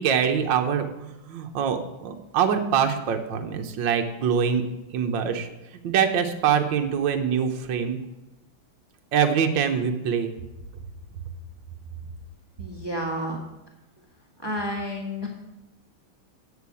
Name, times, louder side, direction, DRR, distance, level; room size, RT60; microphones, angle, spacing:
voice 1, 0.0-4.6 4.9-5.5 5.8-8.0 9.1-10.3, right 7 dB, 65° right, 5 dB, 1.6 m, -24 dB
voice 2, 12.6-13.4 14.4-15.3, equal, 15° right, 0 dB, 1.5 m, -30 dB
8.4 x 6.6 x 8.3 m, 0.96 s
omnidirectional pair, 2.3 m